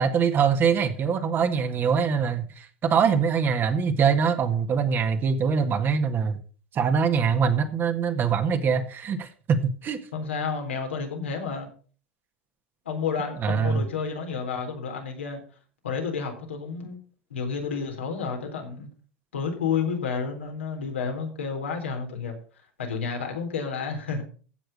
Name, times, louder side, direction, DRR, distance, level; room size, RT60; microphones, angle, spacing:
voice 1, 0.0-6.4 6.7-10.0 13.4-13.8, right 6 dB, 35° right, 6 dB, 1.8 m, -23 dB
voice 2, 10.1-11.7 12.9-15.4 15.8-17.0 17.3-18.9 19.3-22.3 22.8-24.2, left 5 dB, 85° left, 3 dB, 3.8 m, -30 dB
15.5 x 6.6 x 5.3 m, 0.39 s
hypercardioid pair, 90°, 6 cm